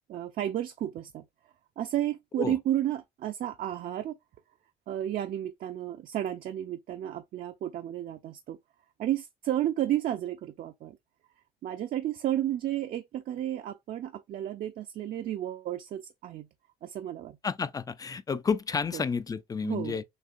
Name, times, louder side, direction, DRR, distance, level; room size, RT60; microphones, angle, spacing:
voice 1, 0.1-1.2 1.8-4.2 4.9-8.6 9.0-11.0 11.6-16.5 16.8-17.4 18.9-19.0 19.6-20.0, right 12 dB, 55° right, 0.5 m, -32 dB
voice 2, 17.4-20.0, left 5 dB, 20° left, 0.4 m, -31 dB
6.4 x 2.5 x 2.5 m
cardioid pair, 110°, 17 cm